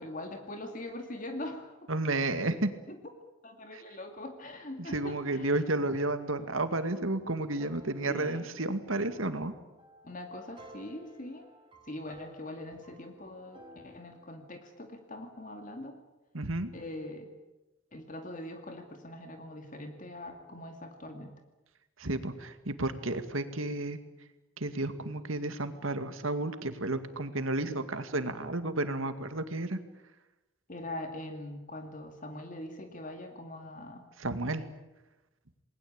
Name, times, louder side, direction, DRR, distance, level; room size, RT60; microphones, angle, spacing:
voice 1, 0.0-1.9 2.9-3.0 3.4-5.7 8.1-8.5 10.0-11.4 11.9-15.9 16.7-17.3 17.9-21.3 30.7-34.1, left 1 dB, 40° left, 5 dB, 2.4 m, -42 dB
voice 2, 1.9-2.7 3.7-3.8 4.8-9.5 16.3-16.7 22.0-24.0 24.6-29.8 34.2-34.6, right 2 dB, 85° right, 10 dB, 2.2 m, -32 dB
sound 1, 6.3-14.6, equal, 25° right, 4.6 m, -56 dB
28.5 x 20.5 x 8.9 m, 1.0 s
head